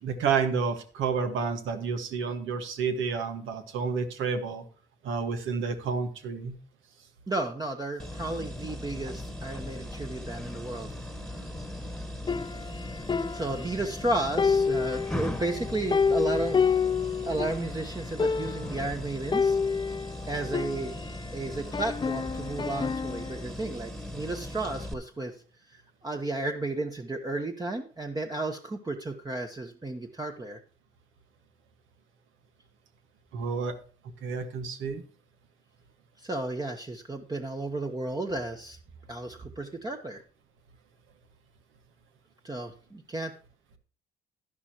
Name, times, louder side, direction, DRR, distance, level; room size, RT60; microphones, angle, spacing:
voice 1, 0.0-4.6 5.0-6.6 33.3-33.7 34.2-35.0, right 5 dB, 85° right, 7 dB, 1.6 m, -30 dB
voice 2, 7.3-10.9 13.3-16.6 17.3-19.6 20.3-21.0 21.3-25.3 26.0-30.6 36.2-38.8 39.1-40.2 42.4-43.3, right 2 dB, 20° right, 3 dB, 1.0 m, -33 dB
sound 1, 8.0-24.9, left 1 dB, 5° left, 1.4 m, -39 dB
sound 2, 12.3-14.0 14.4-17.7 17.9-18.0 18.2-18.8 19.3-21.3 21.7-23.4, left 5 dB, 25° left, 0.5 m, -29 dB
11.5 x 11.0 x 2.9 m, 0.41 s
cardioid pair, 90°, 20 cm